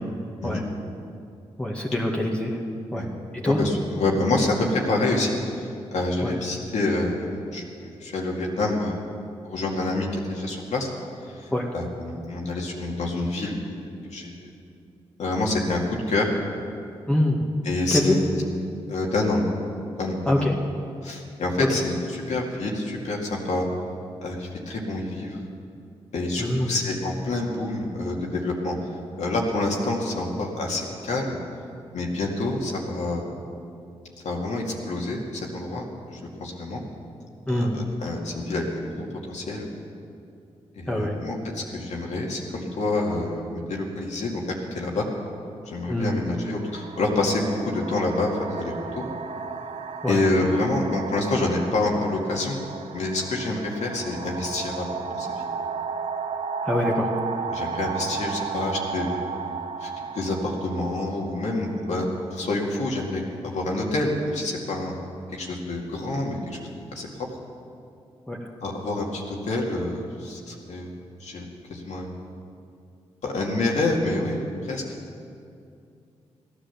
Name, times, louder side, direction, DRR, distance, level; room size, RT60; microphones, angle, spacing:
voice 1, 1.6-2.6 2.9-3.1 3.3-3.6 6.2-6.3 11.5-11.7 17.1-17.4 17.9-18.2 20.3-20.5 26.4-26.8 37.5-37.8 40.9-41.1 45.9-46.2 50.0-50.2 56.6-57.1 68.3-68.4, left 1 dB, 10° left, -2 dB, 2.0 m, -24 dB
voice 2, 3.5-9.0 9.4-10.9 11.3-13.5 14.1-14.5 15.2-16.3 17.6-18.3 18.9-19.4 20.0-20.5 21.0-23.7 24.2-25.4 26.1-28.7 29.2-31.4 31.9-33.3 34.2-36.8 37.5-39.7 40.7-44.4 44.7-45.1 45.7-49.0 50.1-52.6 52.9-54.9 55.1-55.5 57.5-59.2 59.8-64.9 65.3-66.6 66.9-67.1 68.6-70.9 71.2-72.1 73.2-74.8, left 2 dB, 80° left, -2 dB, 2.2 m, -27 dB
sound 1, 45.2-45.3 46.2-62.8, right 5 dB, 70° right, 0.8 m, -34 dB
15.5 x 10.0 x 7.2 m, 2.5 s
cardioid pair, 55°, 12 cm